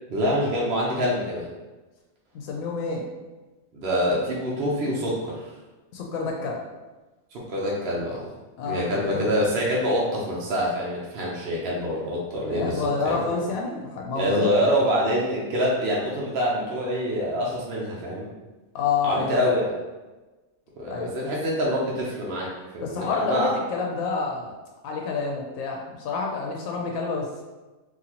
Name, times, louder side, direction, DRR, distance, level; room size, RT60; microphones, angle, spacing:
voice 1, 0.1-1.5 3.7-5.5 7.3-8.3 8.6-13.2 14.2-18.3 19.0-19.7 20.8-23.5, equal, 55° right, -4 dB, 0.8 m, -25 dB
voice 2, 2.3-3.0 5.9-6.6 8.6-9.4 12.5-14.5 18.7-19.4 20.9-21.1 22.8-24.5 24.8-27.4, left 5 dB, 80° left, 0 dB, 1.0 m, -28 dB
3.9 x 2.6 x 2.8 m, 1.2 s
omnidirectional pair, 1.4 m